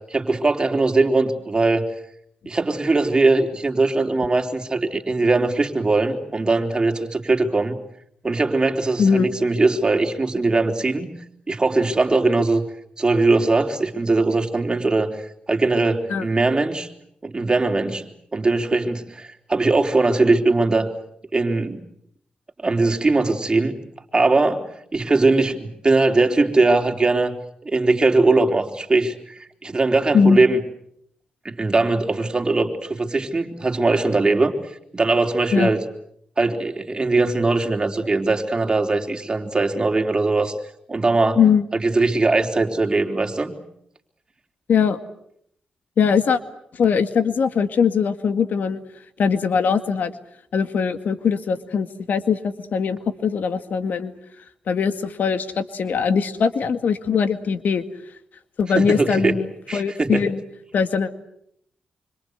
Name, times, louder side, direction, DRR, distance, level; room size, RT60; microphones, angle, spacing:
voice 1, 0.1-1.9 2.5-7.8 8.2-11.1 11.5-12.6 13.0-15.1 15.5-16.9 17.2-18.0 18.3-20.9 21.3-21.8 22.6-23.7 24.1-24.7 24.9-27.4 27.6-30.6 31.4-34.5 34.9-35.8 36.4-40.5 40.9-41.4 41.8-43.6 58.8-59.3 59.7-60.2, right 3 dB, 30° right, 3 dB, 3.9 m, -20 dB
voice 2, 46.0-46.4 46.7-48.8 49.2-50.1 50.5-54.1 54.7-57.8 58.6-60.4 60.7-61.1, left 6 dB, 75° left, 9 dB, 2.0 m, -21 dB
26.0 x 25.5 x 8.1 m, 0.72 s
cardioid pair, 75°, 3 cm